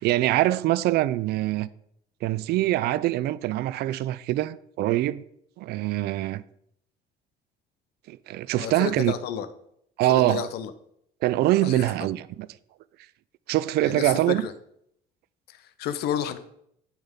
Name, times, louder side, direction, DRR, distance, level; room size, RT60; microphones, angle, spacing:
voice 1, 0.0-1.7 2.2-5.2 5.6-6.4 8.1-9.1 10.0-10.4 11.2-12.3 13.5-14.4, right 15 dB, 70° right, 0.4 m, -24 dB
voice 2, 8.6-9.5 10.1-10.7 11.6-11.9 13.8-14.5 15.5-16.4, left 9 dB, 75° left, 0.6 m, -31 dB
8.8 x 5.8 x 3.6 m
cardioid pair, 110°, 17 cm